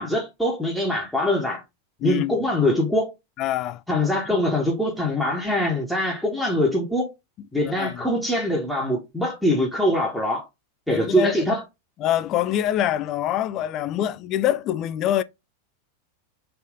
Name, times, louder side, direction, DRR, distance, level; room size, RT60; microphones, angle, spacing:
voice 1, 0.0-1.6 2.0-3.1 3.9-7.1 7.5-10.4 10.9-11.6, left 1 dB, 5° left, 1.0 m, -23 dB
voice 2, 2.0-2.4 3.4-3.8 4.3-4.4 7.4-8.0 10.9-11.4 12.0-15.2, left 11 dB, 35° left, 0.3 m, -25 dB
3.4 x 2.6 x 3.7 m
figure-of-eight pair, 90°, 0 cm